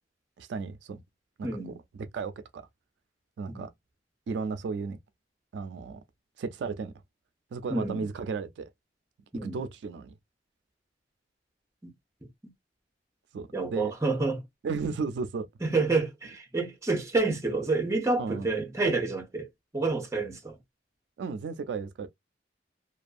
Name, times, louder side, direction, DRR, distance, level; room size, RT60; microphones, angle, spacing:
voice 1, 0.4-1.0 1.4-2.7 3.4-3.7 4.3-5.0 5.5-6.0 6.4-6.9 7.5-8.7 9.4-10.1 13.3-13.9 14.6-15.5 18.2-18.5 21.2-22.1, right 4 dB, 70° right, 0.3 m, -34 dB
voice 2, 1.4-1.8 3.5-3.6 7.7-8.1 9.3-9.6 13.5-14.4 15.6-19.5 19.7-20.6, right 3 dB, 15° right, 0.6 m, -28 dB
2.5 x 2.3 x 2.4 m
head